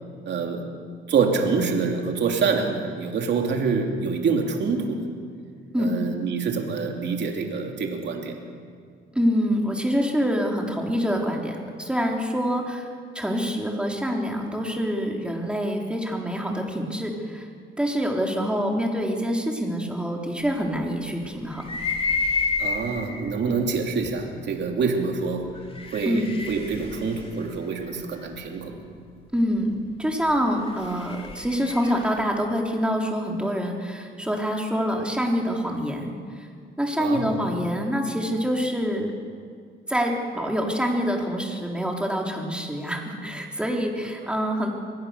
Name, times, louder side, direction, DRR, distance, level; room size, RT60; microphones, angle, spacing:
voice 1, 0.2-0.7 1.1-5.1 5.8-8.4 22.6-25.6 25.9-28.8 37.0-37.5, right 5 dB, 60° right, 3 dB, 2.9 m, -26 dB
voice 2, 9.1-12.9 13.1-17.5 17.8-21.7 26.0-26.3 29.3-36.5 36.8-39.1 39.9-44.7, equal, 5° right, 0 dB, 3.9 m, -26 dB
sound 1, 21.6-23.2 24.1-24.2 25.5-28.4 30.4-32.2, left 4 dB, 30° left, 3.2 m, -30 dB
23.5 x 17.0 x 6.8 m, 2.1 s
cardioid pair, 90°, 20 cm